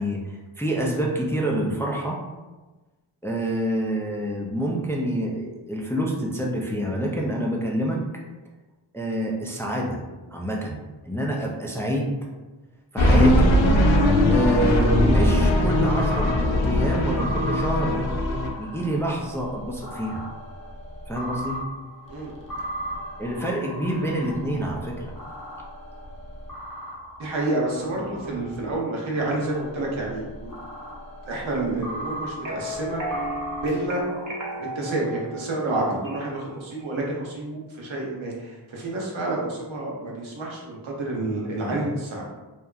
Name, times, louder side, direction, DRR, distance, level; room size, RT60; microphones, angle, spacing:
voice 1, 0.0-2.2 3.2-8.0 8.9-10.0 10.3-10.8 11.1-12.1 12.9-13.6 14.3-18.0 18.6-20.2 21.1-21.6 23.2-25.1 41.7-41.8, right 1 dB, 5° left, -2 dB, 0.4 m, -27 dB
sound 1, 13.0-18.5, left 1 dB, 75° left, 0.6 m, -20 dB
sound 2, 14.3-28.7 29.2-34.3, equal, 45° left, 0.8 m, -38 dB
voice 2, 27.2-30.5 31.3-33.0 33.6-34.0 34.6-42.2, right 2 dB, 75° right, -3 dB, 0.8 m, -29 dB
sound 3, 32.4-36.4, equal, 40° right, 0.7 m, -34 dB
2.8 x 2.2 x 2.3 m, 1.2 s
cardioid pair, 45°, 47 cm